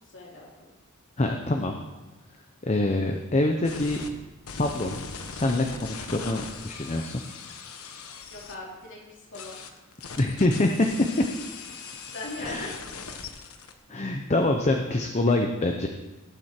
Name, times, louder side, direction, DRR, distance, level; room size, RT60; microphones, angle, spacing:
voice 1, 0.1-0.7 8.3-9.7 12.1-12.7, left 2 dB, 60° left, -3 dB, 3.1 m, -40 dB
voice 2, 1.2-1.8 2.6-4.2 4.5-7.2 10.2-10.9 11.2-11.3 12.4-12.7 13.9-15.9, left 2 dB, 30° left, 3 dB, 0.8 m, -25 dB
sound 1, 3.6-4.1 4.5-8.5 9.3-13.7, left 5 dB, 90° left, 1.1 m, -40 dB
17.5 x 7.9 x 4.5 m, 1.1 s
head